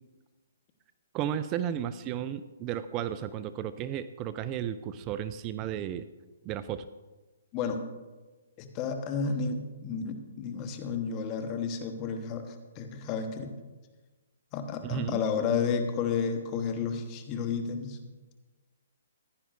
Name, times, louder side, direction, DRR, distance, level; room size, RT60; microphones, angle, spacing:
voice 1, 1.1-6.1 6.5-6.9 14.8-15.2, right 10 dB, 30° right, 13 dB, 0.4 m, -33 dB
voice 2, 8.6-13.5 14.5-18.0, left 5 dB, 30° left, 6 dB, 1.2 m, -31 dB
15.0 x 10.5 x 2.6 m, 1.2 s
hypercardioid pair, 135°, 0 cm